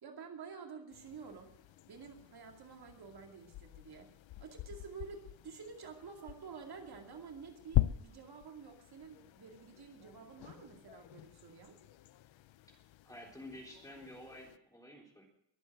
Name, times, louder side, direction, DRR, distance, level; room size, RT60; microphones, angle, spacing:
voice 1, 0.0-1.6 1.9-11.8, right 5 dB, 60° right, 2 dB, 2.5 m, -50 dB
sound 1, 0.9-14.6, left 14 dB, 85° left, 0.7 m, -42 dB
voice 2, 13.1-15.3, left 1 dB, 10° left, -1 dB, 3.6 m, -50 dB
22.5 x 8.0 x 7.8 m, 0.74 s
wide cardioid pair, 180°, 44 cm